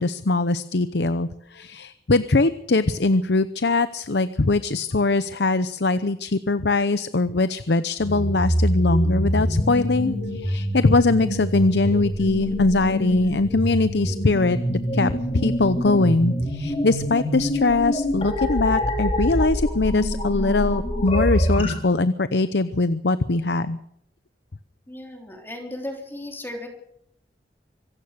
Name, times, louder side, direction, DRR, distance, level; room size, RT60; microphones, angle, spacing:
voice 1, 0.0-23.8, left 3 dB, 75° left, 13 dB, 0.8 m, -22 dB
sound 1, 8.0-21.7, equal, 35° left, 5.1 m, -25 dB
voice 2, 24.9-26.7, left 1 dB, 15° left, 2 dB, 3.4 m, -35 dB
25.0 x 16.5 x 6.7 m, 0.73 s
head